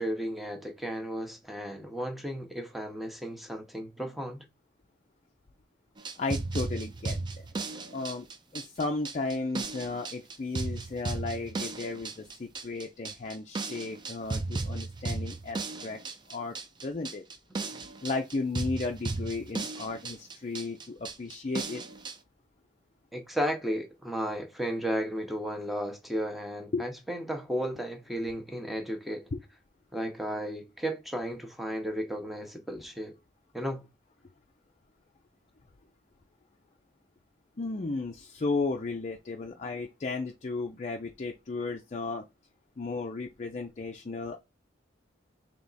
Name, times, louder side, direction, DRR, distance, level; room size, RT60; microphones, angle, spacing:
voice 1, 0.0-4.4 23.1-29.3 29.9-33.1 33.5-33.8, equal, ahead, 0.8 m, -34 dB
sound 1, 6.0-22.2, right 3 dB, 25° right, 0.4 m, -35 dB
voice 2, 6.2-7.2 7.9-8.3 8.5-16.0 16.3-16.6 16.8-17.2 18.0-21.8 26.7-26.9 29.3-29.4 37.6-42.2 42.8-44.4, left 3 dB, 35° left, 0.5 m, -34 dB
3.5 x 2.8 x 4.0 m
head